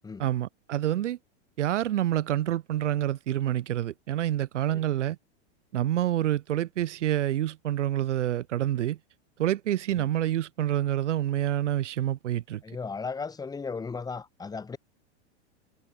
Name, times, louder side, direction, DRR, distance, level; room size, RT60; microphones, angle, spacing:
voice 1, 0.2-1.2 1.6-5.2 5.7-9.0 9.4-12.6, right 12 dB, 85° right, 2.5 m, -27 dB
voice 2, 12.6-14.8, left 4 dB, 10° left, 4.6 m, -36 dB
supercardioid pair, 150°, 35 cm